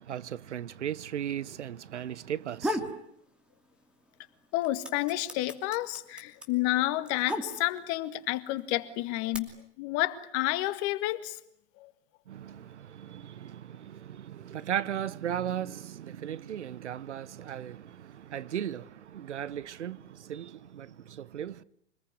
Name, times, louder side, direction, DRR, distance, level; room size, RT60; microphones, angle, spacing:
voice 1, 0.0-2.9 12.3-21.6, right 10 dB, 85° right, 1.0 m, -37 dB
sound 1, 2.3-3.0 3.4-4.1 4.4-8.0 8.7-9.4, equal, 5° right, 2.7 m, -35 dB
voice 2, 4.5-11.4 11.8-11.9, left 17 dB, 40° left, 1.9 m, -30 dB
26.0 x 20.5 x 9.7 m
hypercardioid pair, 125°, 34 cm